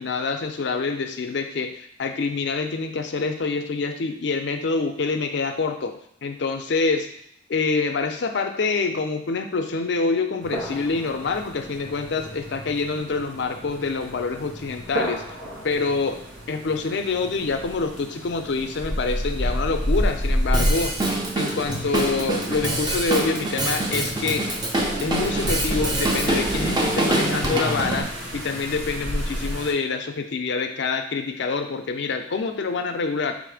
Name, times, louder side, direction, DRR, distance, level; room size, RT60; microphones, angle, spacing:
voice 1, 0.0-5.9 6.2-7.1 7.5-15.2 15.6-16.2 16.5-20.9 21.4-24.5 25.0-28.1 28.3-33.3, left 4 dB, 65° left, 6 dB, 0.5 m, -26 dB
sound 1, 10.4-29.7, equal, 80° right, 1.0 m, -31 dB
Drum kit, 20.5-28.0, right 1 dB, 25° right, 0.6 m, -25 dB
5.1 x 2.0 x 4.8 m, 0.70 s
head